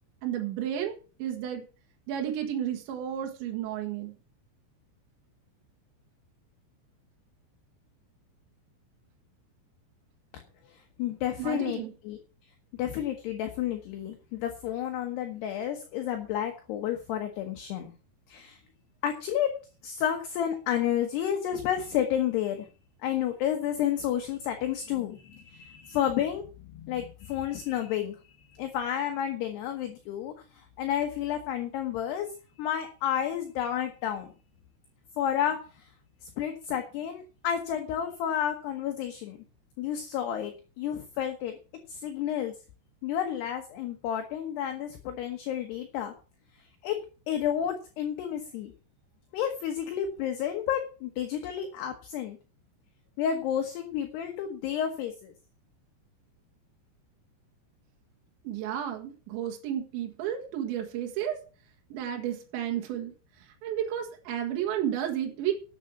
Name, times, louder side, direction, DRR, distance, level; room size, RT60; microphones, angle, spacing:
voice 1, 0.2-1.7 2.1-4.1 11.4-11.9 58.5-61.4 61.9-63.1 63.4-65.5, right 10 dB, 70° right, 2 dB, 3.6 m, -32 dB
voice 2, 11.0-12.2 12.8-17.9 18.3-18.6 19.0-19.5 19.8-22.7 23.0-26.4 26.7-28.2 28.5-32.3 32.6-34.3 35.2-35.6 36.4-39.4 39.8-41.6 41.9-42.5 43.0-46.1 46.8-47.0 47.3-48.7 49.3-52.4 53.2-55.3, left 10 dB, 70° left, 4 dB, 2.9 m, -31 dB
12.5 x 8.0 x 5.9 m, 0.36 s
omnidirectional pair, 5.9 m